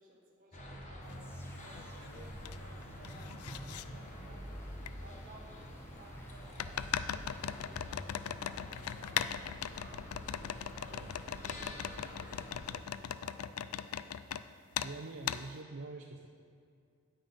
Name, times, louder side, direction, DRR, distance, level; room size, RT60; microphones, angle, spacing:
voice 1, 0.0-4.5 5.0-10.1 10.8-14.3, right 1 dB, 40° right, -2 dB, 1.7 m, -58 dB
sound 1, 0.5-12.7, equal, 35° left, 1.3 m, -47 dB
sound 2, 1.1-1.2 1.7-2.6 2.8-3.8 4.9-5.0 6.6-14.4 14.7-14.9 15.3-15.4, left 9 dB, 90° left, 0.4 m, -39 dB
sound 3, 1.2-10.5 10.7-12.5, left 1 dB, 10° left, 0.8 m, -59 dB
voice 2, 14.2-16.3, right 3 dB, 60° right, 2 dB, 0.6 m, -46 dB
9.1 x 8.9 x 5.6 m, 2.2 s
head